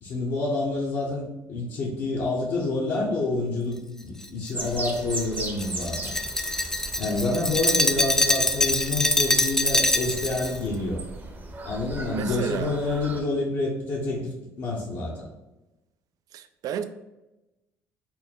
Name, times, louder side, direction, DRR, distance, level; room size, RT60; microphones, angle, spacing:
voice 1, 0.0-6.1 7.0-11.0 11.6-15.3, left 2 dB, 60° left, -5 dB, 0.9 m, -28 dB
Glass, 4.2-10.6, left 1 dB, 5° left, 0.4 m, -24 dB
sound 1, 4.5-13.2, right 2 dB, 30° right, 0.7 m, -38 dB
voice 2, 12.1-12.7 16.3-16.8, right 9 dB, 60° right, 10 dB, 0.4 m, -32 dB
4.3 x 2.1 x 3.7 m, 0.99 s
supercardioid pair, 75°, 7 cm